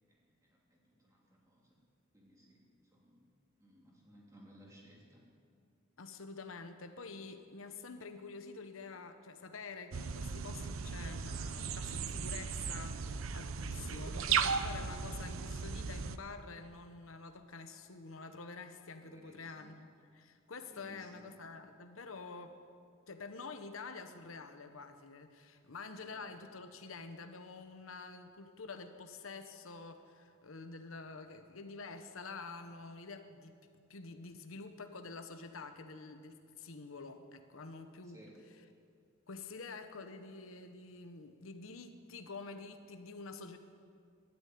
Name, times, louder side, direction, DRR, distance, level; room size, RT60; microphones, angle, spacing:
voice 1, 0.1-1.8 2.1-3.2 3.6-5.2 13.7-14.2 19.0-19.7 20.7-21.3 26.0-26.2 38.0-38.4, equal, 15° right, -3 dB, 3.1 m, -60 dB
voice 2, 6.0-22.6 23.1-33.5 33.9-38.2 39.3-43.6, left 4 dB, 85° left, 8 dB, 1.0 m, -48 dB
sound 1, 9.9-16.2, right 6 dB, 80° right, 0.7 m, -36 dB
12.5 x 10.5 x 9.4 m, 2.3 s
head